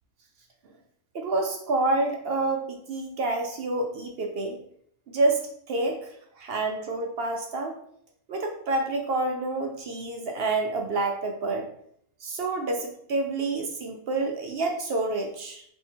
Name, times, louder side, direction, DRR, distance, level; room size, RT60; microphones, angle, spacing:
voice 1, 1.1-4.6 5.1-5.4 5.7-7.7 8.3-11.7 12.2-15.6, right 2 dB, 60° right, 2 dB, 0.6 m, -28 dB
3.5 x 2.7 x 4.3 m, 0.68 s
omnidirectional pair, 1.5 m